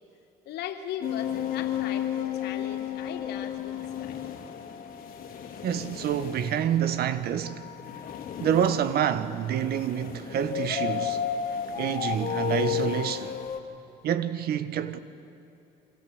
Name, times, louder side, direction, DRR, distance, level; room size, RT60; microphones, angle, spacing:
voice 1, 0.5-4.2, left 9 dB, 75° left, 2.7 m, -38 dB
sound 1, 1.0-13.6, left 9 dB, 55° left, 3.1 m, -33 dB
voice 2, 5.6-7.7 8.4-11.2 11.7-13.4 14.0-15.0, right 9 dB, 65° right, 1.5 m, -27 dB
29.0 x 25.0 x 8.1 m
cardioid pair, 110°, 17 cm